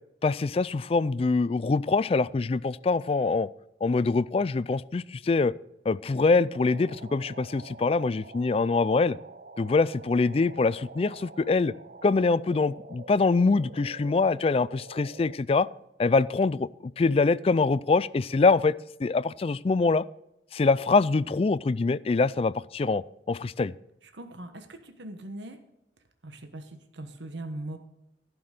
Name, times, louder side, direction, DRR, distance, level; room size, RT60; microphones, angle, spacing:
voice 1, 0.2-3.5 3.8-5.5 5.9-9.2 9.6-11.7 12.0-15.7 16.0-18.7 19.0-20.0 20.5-23.7, left 3 dB, 35° left, 19 dB, 0.3 m, -24 dB
sound 1, 6.5-15.4, right 3 dB, 55° right, 0.7 m, -47 dB
voice 2, 24.1-25.6 26.2-27.8, right 1 dB, 85° right, 6 dB, 1.3 m, -40 dB
15.0 x 6.1 x 6.6 m, 0.85 s
head